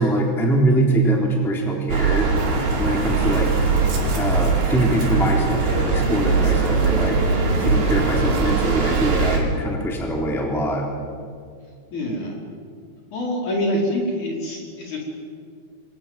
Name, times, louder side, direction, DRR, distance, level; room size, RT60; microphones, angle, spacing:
voice 1, 0.0-3.5 4.1-10.8, right 1 dB, ahead, 0 dB, 3.0 m, -23 dB
sound 1, 1.9-9.4, right 4 dB, 85° right, 6.6 m, -21 dB
voice 2, 11.9-12.3 13.1-15.0, left 1 dB, 45° left, -1 dB, 6.3 m, -25 dB
28.5 x 25.0 x 7.6 m, 2.2 s
omnidirectional pair, 4.7 m